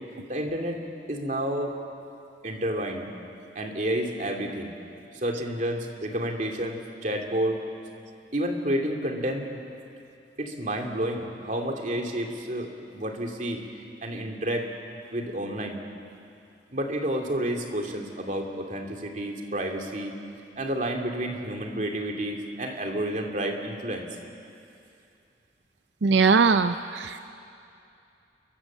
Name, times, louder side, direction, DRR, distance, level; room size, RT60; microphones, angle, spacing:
voice 1, 0.3-1.7 2.4-3.1 3.5-4.7 5.1-7.6 8.3-9.5 10.4-13.6 14.0-14.7 15.1-15.8 16.7-20.1 20.6-24.1, right 1 dB, 45° right, 2 dB, 2.6 m, -30 dB
voice 2, 26.0-27.3, right 4 dB, 85° right, 10 dB, 0.6 m, -21 dB
29.0 x 23.5 x 7.4 m, 2.6 s
head